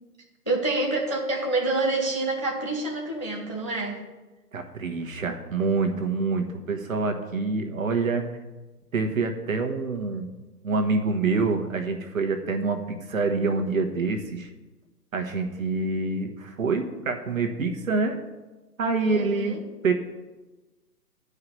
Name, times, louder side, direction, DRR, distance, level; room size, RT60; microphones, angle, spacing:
voice 1, 0.5-4.0 19.0-19.6, right 2 dB, 20° left, 0 dB, 0.4 m, -27 dB
voice 2, 4.5-8.3 8.9-10.3 10.6-14.5 15.1-18.2 18.8-19.6 19.8-19.9, right 4 dB, 55° right, 5 dB, 1.3 m, -26 dB
10.5 x 4.9 x 6.9 m, 1.2 s
figure-of-eight pair, 135°, 48 cm